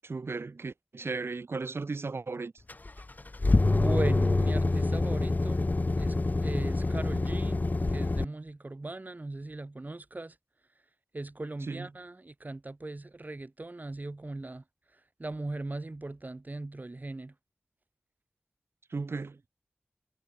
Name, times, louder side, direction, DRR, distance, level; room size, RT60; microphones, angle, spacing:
voice 1, 0.0-2.5 11.7-11.9 18.9-19.4, right 4 dB, 75° right, 4.6 m, -35 dB
sound 1, 2.7-8.2, left 2 dB, 45° left, 1.0 m, -26 dB
voice 2, 3.7-5.7 6.0-7.6 7.9-10.4 11.1-14.6 14.9-17.3, right 2 dB, 45° right, 3.0 m, -38 dB
cardioid pair, 45°, 4 cm